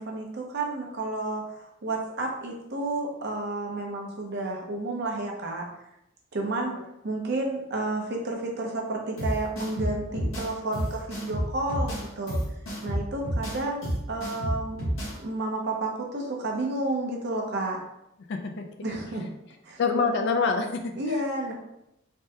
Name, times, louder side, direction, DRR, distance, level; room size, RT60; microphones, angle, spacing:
voice 1, 0.0-5.6 6.3-6.7 7.0-12.4 12.8-14.8 15.2-17.8 18.8-19.3 19.6-19.8 21.0-21.5, right 2 dB, 50° right, 0 dB, 0.6 m, -31 dB
sound 1, 9.2-15.2, equal, 70° left, 1.0 m, -30 dB
voice 2, 18.3-18.6 18.9-19.0 19.8-20.8, left 4 dB, 55° left, 5 dB, 0.3 m, -26 dB
3.4 x 2.2 x 2.7 m, 0.82 s
head